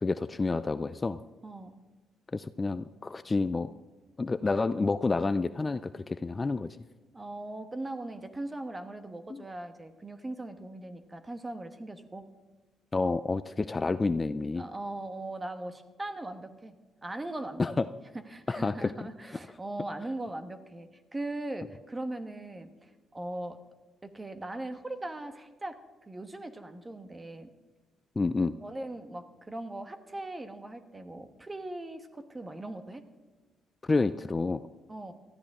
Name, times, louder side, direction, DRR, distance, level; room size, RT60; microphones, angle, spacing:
voice 1, 0.0-1.2 2.3-3.7 4.2-6.7 9.3-9.4 12.9-14.6 17.6-17.9 18.5-18.9 28.2-28.5 33.8-34.6, left 3 dB, 25° left, 13 dB, 0.4 m, -29 dB
voice 2, 1.4-1.8 7.1-12.3 14.6-16.7 17.0-17.7 18.3-23.6 24.0-27.5 28.6-33.0 34.9-35.1, right 2 dB, 20° right, 9 dB, 1.2 m, -39 dB
18.5 x 13.5 x 3.6 m, 1.2 s
cardioid pair, 90°, 0 cm